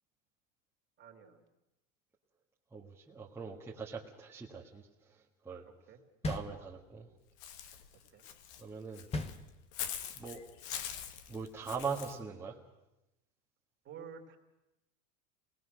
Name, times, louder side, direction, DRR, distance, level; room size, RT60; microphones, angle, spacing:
voice 1, 1.0-1.4 5.6-6.0 8.1-8.2 13.8-14.4, right 7 dB, 30° right, 3 dB, 2.8 m, -50 dB
voice 2, 2.7-4.9 5.4-5.6 6.2-7.1 8.6-9.1 10.1-10.4 11.3-12.6, right 5 dB, 5° right, -6 dB, 1.7 m, -41 dB
sound 1, 6.2-7.2 9.1-10.0, left 2 dB, 15° left, 1.0 m, -39 dB
Walk footsteps / Bird, 7.4-12.2, left 9 dB, 65° left, 1.7 m, -43 dB
25.5 x 19.5 x 6.5 m, 0.95 s
supercardioid pair, 145°, 37 cm